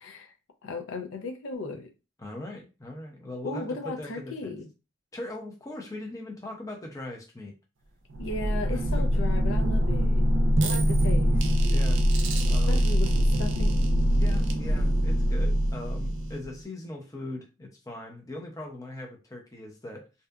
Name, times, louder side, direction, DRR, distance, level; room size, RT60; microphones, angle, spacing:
voice 1, 0.0-0.3 0.6-1.9 3.4-4.7 8.2-10.3 10.6-11.4 12.7-13.8, left 3 dB, 80° left, 0.5 m, -36 dB
voice 2, 2.2-4.5 5.1-7.5 8.7-9.0 10.6-10.8 11.7-12.0 12.5-13.0 14.1-20.1, left 1 dB, 15° left, 0.5 m, -40 dB
sound 1, 8.1-16.6, equal, 75° right, 0.4 m, -23 dB
2.6 x 2.4 x 2.2 m
head